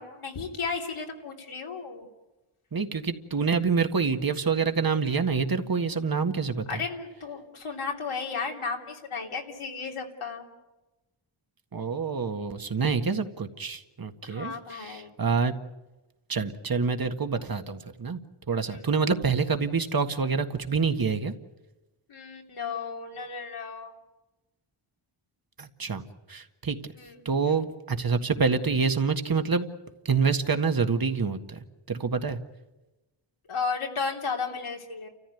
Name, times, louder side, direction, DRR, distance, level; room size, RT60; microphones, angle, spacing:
voice 1, 0.0-2.1 6.7-10.4 14.2-15.1 18.7-18.8 22.1-23.9 27.0-27.2 27.5-27.6 33.5-35.1, left 5 dB, 85° left, 0 dB, 3.3 m, -34 dB
voice 2, 2.7-6.8 11.7-15.5 16.3-18.2 18.5-21.3 25.6-26.0 26.3-26.8 27.3-29.7 30.1-31.6 31.9-32.4, right 5 dB, 45° right, 7 dB, 1.8 m, -27 dB
29.5 x 14.5 x 9.3 m, 1.1 s
cardioid pair, 60°, 49 cm